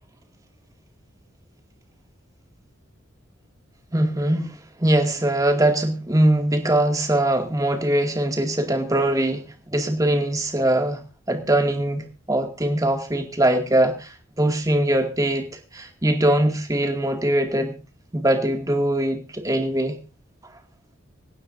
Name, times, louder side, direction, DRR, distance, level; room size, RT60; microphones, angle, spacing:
voice 1, 3.9-11.0 11.3-17.7 18.1-20.0, right 1 dB, 15° right, 2.2 m, -22 dB
26.0 x 9.8 x 2.6 m
head